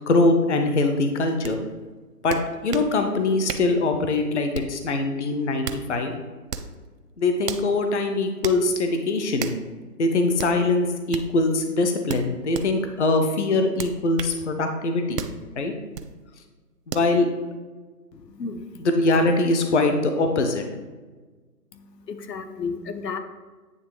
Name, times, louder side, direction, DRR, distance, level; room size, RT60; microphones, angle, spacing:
voice 1, 0.1-1.6 2.2-2.4 2.6-6.1 7.2-9.5 10.0-15.2 15.6-15.7 16.9-17.3 18.8-20.6, left 2 dB, 45° left, 6 dB, 0.7 m, -22 dB
Punching Dough, 1.4-1.6 2.3-2.9 3.5-3.7 4.5-4.8 5.4-5.9 6.5-6.7 7.4-7.7 8.4-8.6 9.4-9.6 10.4-10.6 11.1-11.3 12.1-12.7 13.8-14.4 15.2-15.4 15.9-16.1 16.9-17.1, right 6 dB, 80° right, 0.8 m, -33 dB
voice 2, 18.1-18.9 21.7-23.2, left 5 dB, 80° left, 8 dB, 0.9 m, -33 dB
9.3 x 3.1 x 4.7 m, 1.3 s
hypercardioid pair, 165°, 48 cm